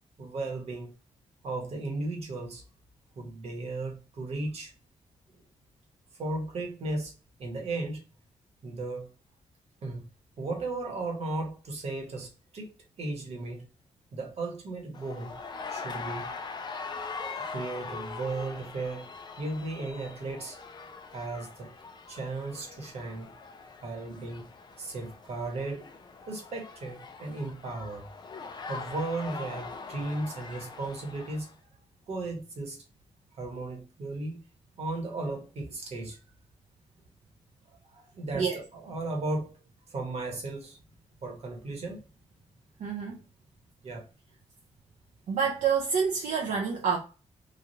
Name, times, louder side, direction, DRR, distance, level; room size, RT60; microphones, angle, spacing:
voice 1, 0.2-0.9 1.4-2.6 3.2-4.7 6.2-7.1 7.4-8.0 8.6-9.1 9.8-10.1 10.4-12.7 13.0-13.7 14.1-15.4 15.7-16.3 17.5-19.1 19.4-20.6 21.1-21.7 22.1-23.3 23.8-24.5 24.8-25.9 26.3-28.1 28.7-31.5 32.1-32.8 33.4-34.4 34.8-36.2 37.7-39.5 39.9-40.8 41.2-42.0 43.8-44.1, right 2 dB, 55° right, 1.2 m, -35 dB
sound 1, 14.9-31.5, left 4 dB, 35° left, 0.5 m, -42 dB
voice 2, 42.8-43.2 45.3-47.0, right 6 dB, 80° right, 0.6 m, -27 dB
3.1 x 2.4 x 2.7 m
wide cardioid pair, 125°, 12 cm